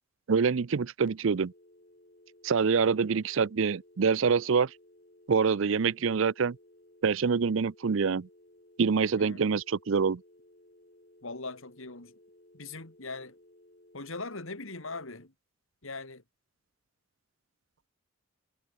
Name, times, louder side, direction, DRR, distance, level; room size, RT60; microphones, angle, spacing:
voice 1, 0.3-1.5 2.4-4.7 5.3-6.6 7.0-8.3 8.8-10.2, right 5 dB, 70° right, 0.5 m, -26 dB
sound 1, 1.1-15.3, left 1 dB, 40° left, 3.4 m, -59 dB
voice 2, 11.2-12.1 12.5-13.4 13.9-15.3 15.8-16.2, left 3 dB, 75° left, 3.0 m, -40 dB
head